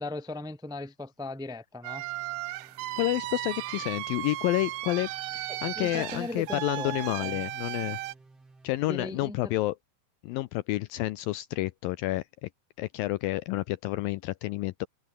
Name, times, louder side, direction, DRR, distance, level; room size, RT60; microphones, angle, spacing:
voice 1, 0.0-2.0 5.5-7.4 8.8-9.5, left 2 dB, 5° right, 0.7 m, -38 dB
sound 1, 1.8-8.1, right 17 dB, 80° right, 2.0 m, -36 dB
sound 2, 2.0-9.2, right 3 dB, 35° right, 8.0 m, -57 dB
voice 2, 3.0-8.0 8.6-9.8 10.2-12.5 12.8-14.9, left 18 dB, 85° left, 2.1 m, -30 dB
omnidirectional pair, 4.7 m